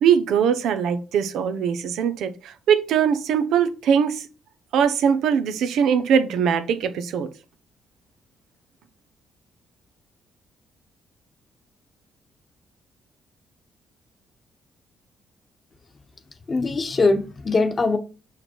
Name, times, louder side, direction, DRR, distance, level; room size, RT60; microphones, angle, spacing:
voice 1, 0.0-4.2 4.7-7.3, right 7 dB, 80° right, 1.0 m, -21 dB
voice 2, 16.5-18.0, left 3 dB, 35° left, 1.1 m, -21 dB
5.9 x 5.0 x 4.5 m
cardioid pair, 90°, 0 cm